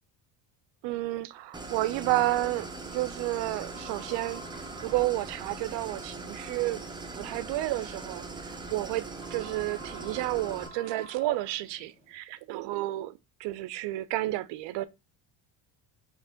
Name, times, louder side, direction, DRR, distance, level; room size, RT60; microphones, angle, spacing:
voice 1, 0.8-4.4 4.8-6.8 7.1-14.8, right 16 dB, 60° right, 0.5 m, -31 dB
Idling, 1.5-10.7, right 3 dB, 10° right, 0.5 m, -41 dB
sound 1, 3.7-12.2, equal, 10° left, 1.7 m, -51 dB
3.2 x 3.0 x 3.7 m
cardioid pair, 110°, 48 cm